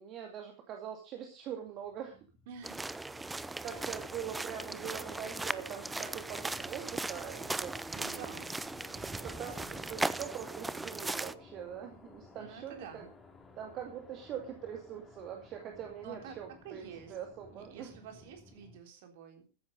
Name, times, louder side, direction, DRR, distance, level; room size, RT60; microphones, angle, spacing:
voice 1, 0.0-2.3 3.6-8.4 9.2-13.1 13.6-17.9, right 9 dB, 35° right, 3 dB, 2.4 m, -43 dB
sound 1, 1.7-18.8, left 3 dB, 15° left, 3.1 m, -56 dB
voice 2, 2.5-2.9 3.7-3.9 7.9-8.6 8.9-9.9 12.3-13.1 16.0-16.4 16.6-17.2 17.5-19.4, right 6 dB, 50° right, 5 dB, 3.6 m, -50 dB
sound 2, 2.6-11.3, right 2 dB, 10° right, 0.6 m, -38 dB
sound 3, 3.7-9.8, left 5 dB, 65° left, 3.0 m, -59 dB
14.5 x 9.9 x 5.3 m, 0.35 s
figure-of-eight pair, 90°, 0 cm